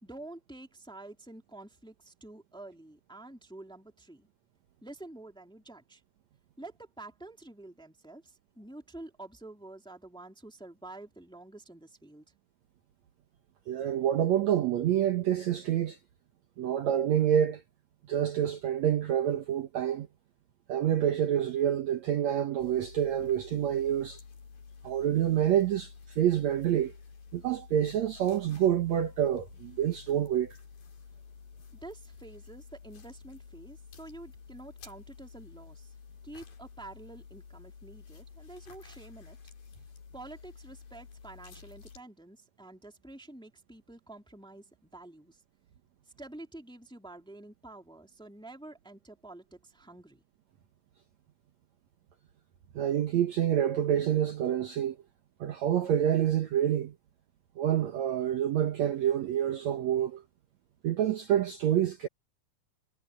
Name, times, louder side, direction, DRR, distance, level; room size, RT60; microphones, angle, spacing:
voice 1, 0.0-4.3 4.8-6.0 6.6-12.2 31.8-35.9 36.2-39.4 40.1-45.4 46.2-50.2, right 2 dB, ahead, 2.0 m, -48 dB
voice 2, 13.7-16.0 16.6-17.6 18.1-20.1 20.7-24.2 24.8-26.9 27.3-30.6 52.7-55.0 55.4-56.9 57.6-60.2 60.8-62.1, right 10 dB, 80° right, 1.5 m, -27 dB
sound 1, 22.6-42.0, left 5 dB, 55° left, 5.6 m, -51 dB
omnidirectional pair, 4.8 m